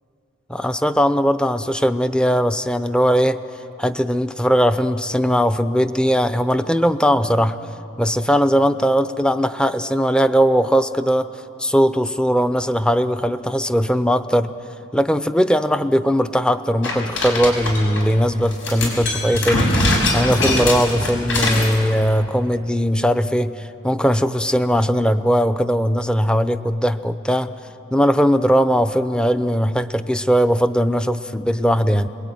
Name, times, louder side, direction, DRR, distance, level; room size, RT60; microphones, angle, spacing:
voice 1, 0.5-3.4 3.8-7.6 8.0-11.3 11.6-14.5 14.9-19.8 20.1-27.6 27.9-32.1, equal, 5° left, 11 dB, 0.6 m, -19 dB
sound 1, 16.8-18.0 18.5-21.7, left 1 dB, 85° left, 6.3 m, -22 dB
30.0 x 21.5 x 9.2 m, 2.8 s
head